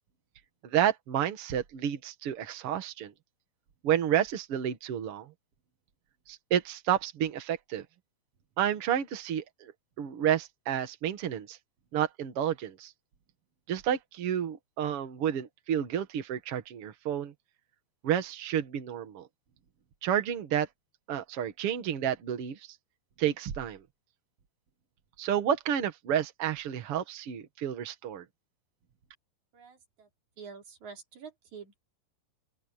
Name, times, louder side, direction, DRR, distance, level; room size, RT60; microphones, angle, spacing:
voice 1, 0.6-3.1 3.8-5.3 6.3-7.8 8.6-11.6 11.9-12.9 13.7-17.3 18.0-19.3 20.0-20.7 21.1-22.8 23.2-23.8 25.2-28.2, right 9 dB, 85° right, 1.2 m, -30 dB
voice 2, 29.5-30.1 30.4-31.8, right 6 dB, 45° right, 4.4 m, -47 dB
open air
omnidirectional pair, 5.3 m